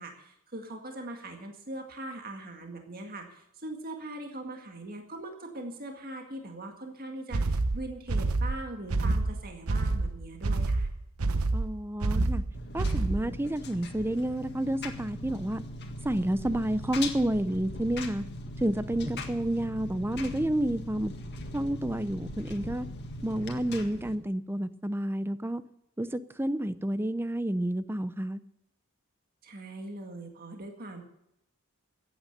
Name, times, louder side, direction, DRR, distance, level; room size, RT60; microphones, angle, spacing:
voice 1, 0.0-10.9 29.4-31.0, right 1 dB, 45° right, 3 dB, 1.9 m, -41 dB
sound 1, 7.3-13.4, right 2 dB, 80° right, 0.9 m, -28 dB
voice 2, 11.5-12.4 12.7-15.6 16.0-18.2 18.6-21.1 21.5-22.9 23.2-25.6 26.0-28.4, right 1 dB, 10° right, 14 dB, 0.5 m, -30 dB
Engine, 12.5-24.1, left 1 dB, 50° left, 1.8 m, -40 dB
15.5 x 9.1 x 6.7 m, 0.78 s
head